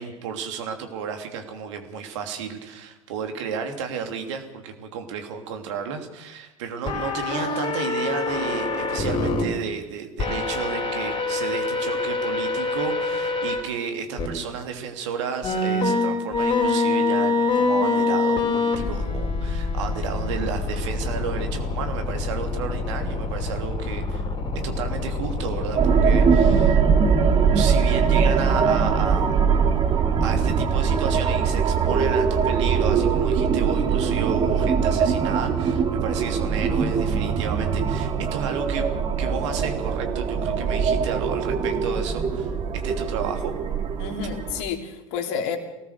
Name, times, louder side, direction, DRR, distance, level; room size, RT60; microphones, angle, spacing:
voice 1, 0.0-24.2 24.6-26.8 27.5-29.4 30.2-38.9 39.2-42.5 42.8-43.5, right 6 dB, 55° right, 6 dB, 3.0 m, -32 dB
sound 1, 6.9-9.4 10.2-13.6 14.2-14.3 15.4-26.7, left 3 dB, 25° left, 4.5 m, -25 dB
sound 2, 25.7-44.6, right 6 dB, 30° right, 2.4 m, -22 dB
voice 2, 44.0-45.6, left 7 dB, 50° left, 5 dB, 3.0 m, -30 dB
24.5 x 18.5 x 6.7 m, 1.0 s
figure-of-eight pair, 80°, 18 cm